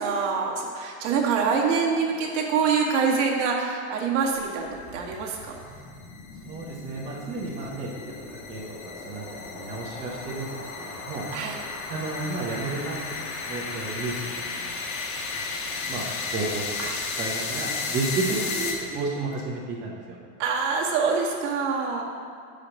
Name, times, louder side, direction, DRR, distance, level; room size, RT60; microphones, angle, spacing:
voice 1, 0.0-5.4 11.3-11.6 16.8-17.0 18.3-18.8 20.4-22.0, right 5 dB, 55° right, -2 dB, 1.5 m, -25 dB
sound 1, 4.4-19.2, left 4 dB, 80° left, 1.4 m, -34 dB
voice 2, 6.4-7.9 8.5-10.5 10.8-11.2 11.9-14.2 14.5-14.7 15.3-16.1 16.3-16.9 17.2-18.3 18.6-20.2, right 3 dB, 20° right, -5 dB, 0.7 m, -32 dB
7.2 x 5.0 x 6.3 m, 2.3 s
supercardioid pair, 165°, 42 cm